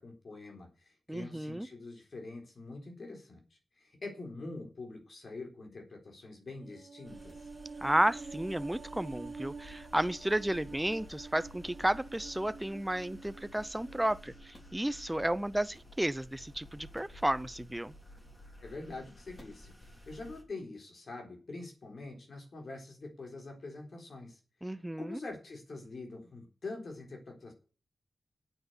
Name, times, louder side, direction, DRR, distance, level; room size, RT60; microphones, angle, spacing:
voice 1, 0.0-3.4 3.8-7.4 18.6-24.4 25.0-27.5, left 3 dB, 55° left, 3.9 m, -45 dB
voice 2, 1.1-1.7 7.8-17.9 24.6-25.2, right 1 dB, 10° right, 0.5 m, -32 dB
sound 1, 6.6-15.1 15.4-15.5, right 4 dB, 60° right, 0.7 m, -48 dB
sound 2, 7.0-20.4, left 1 dB, 25° left, 4.2 m, -53 dB
9.1 x 8.2 x 8.0 m
wide cardioid pair, 105°, 0 cm